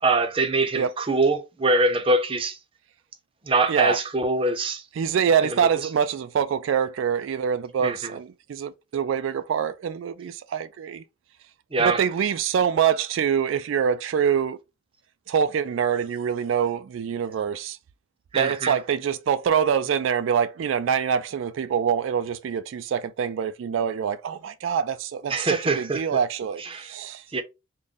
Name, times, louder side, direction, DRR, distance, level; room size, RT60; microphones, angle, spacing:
voice 1, 0.0-2.6 3.5-4.8 5.4-5.7 7.8-8.2 11.7-12.0 18.3-18.8 25.3-26.2 26.6-26.9 27.3-27.4, right 2 dB, 30° right, 0.5 m, -24 dB
voice 2, 5.0-11.0 11.8-14.6 15.3-17.8 18.4-27.2, right 7 dB, 85° right, 0.3 m, -25 dB
3.7 x 2.1 x 3.7 m
head